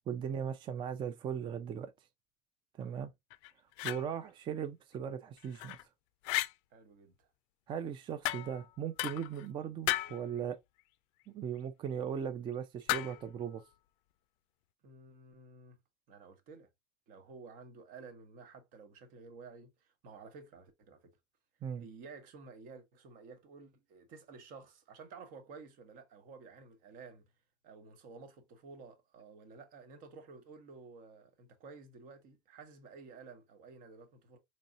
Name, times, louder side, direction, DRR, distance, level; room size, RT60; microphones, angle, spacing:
voice 1, 0.1-1.9 2.8-3.1 3.8-5.8 7.7-10.6 11.3-13.6 21.6-21.8, right 8 dB, 30° right, 0.4 m, -38 dB
sound 1, 3.3-4.0 5.4-5.8 6.2-6.5 8.2-8.7 9.0-9.5 9.9-10.2 12.9-13.3, left 17 dB, 70° left, 0.4 m, -35 dB
voice 2, 6.7-7.3 14.8-15.8 16.1-16.7 17.1-21.1 21.8-27.2 27.6-34.4, right 4 dB, 60° right, 1.2 m, -53 dB
4.1 x 3.1 x 2.5 m
supercardioid pair, 135°, 16 cm